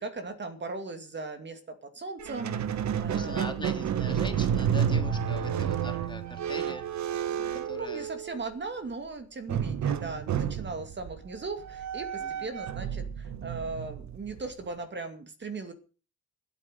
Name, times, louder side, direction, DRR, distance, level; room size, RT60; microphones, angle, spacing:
voice 1, 0.0-3.4 7.3-15.7, right 3 dB, 35° right, 8 dB, 2.5 m, -38 dB
Squeak, 2.2-8.5 9.5-14.7, right 8 dB, 65° right, 1.5 m, -31 dB
voice 2, 3.1-6.8 7.6-8.1 12.2-12.3, left 2 dB, 15° left, 5 dB, 3.2 m, -41 dB
15.0 x 8.9 x 6.6 m, 0.36 s
cardioid pair, 90°, 30 cm